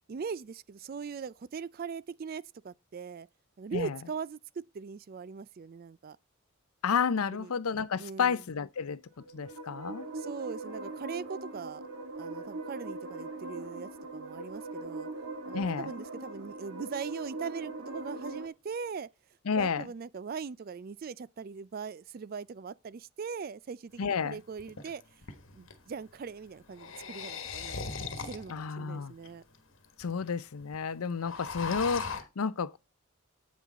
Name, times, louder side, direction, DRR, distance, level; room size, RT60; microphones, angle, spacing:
voice 1, 0.1-3.3 3.6-6.2 7.3-7.5 8.0-8.4 10.1-11.8 12.2-15.1 15.5-19.1 19.5-25.0 25.5-27.8 28.2-29.4, right 5 dB, 40° right, 0.3 m, -40 dB
voice 2, 6.8-9.0 9.3-10.1 15.5-15.9 19.5-19.9 24.0-24.4 28.5-29.1 30.0-32.8, left 6 dB, 80° left, 0.6 m, -31 dB
sound 1, 9.1-18.5, right 2 dB, 85° right, 1.7 m, -41 dB
sound 2, 24.0-24.1 24.6-25.8 26.6-28.7 29.2-29.3 29.5-29.6 29.8-30.3 30.6-30.7 31.0-32.2, left 5 dB, 60° left, 1.3 m, -38 dB
8.5 x 6.1 x 4.1 m
head